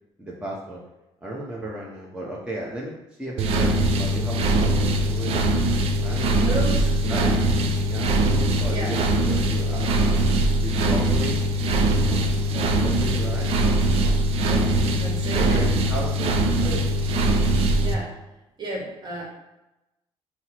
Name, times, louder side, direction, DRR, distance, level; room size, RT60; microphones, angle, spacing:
voice 1, 0.2-0.8 1.2-5.5 6.0-7.4 7.9-10.3 10.6-11.4 11.9-12.3 12.8-14.4 15.3-16.9, right 1 dB, 10° right, -5 dB, 0.7 m, -35 dB
sound 1, 3.4-17.9, right 1 dB, 70° right, 0.5 m, -22 dB
voice 2, 6.3-6.8 7.1-7.4 8.7-9.0 12.5-12.7 14.5-15.7 16.6-16.9 17.8-18.2 18.6-19.3, right 1 dB, 45° right, -2 dB, 1.4 m, -33 dB
4.4 x 2.0 x 4.3 m, 0.96 s
cardioid pair, 110°, 10 cm